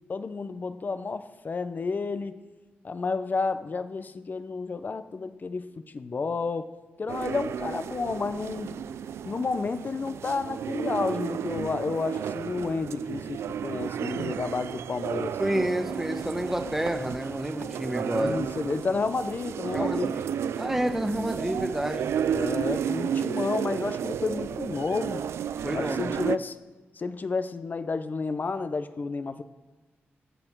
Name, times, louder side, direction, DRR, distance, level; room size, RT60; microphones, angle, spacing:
voice 1, 0.1-2.4 2.8-5.7 5.9-6.7 7.0-8.7 9.2-15.4 18.1-20.1 22.3-25.2 25.7-26.6 27.0-29.4, left 4 dB, 45° left, 11 dB, 0.8 m, -31 dB
sound 1, 7.1-26.4, right 8 dB, 85° right, 0.4 m, -32 dB
voice 2, 15.4-18.4 19.7-20.2 20.6-22.1 25.6-26.2, right 1 dB, 5° right, 6 dB, 1.1 m, -29 dB
22.5 x 7.8 x 4.7 m, 1.2 s
cardioid pair, 80°, 4 cm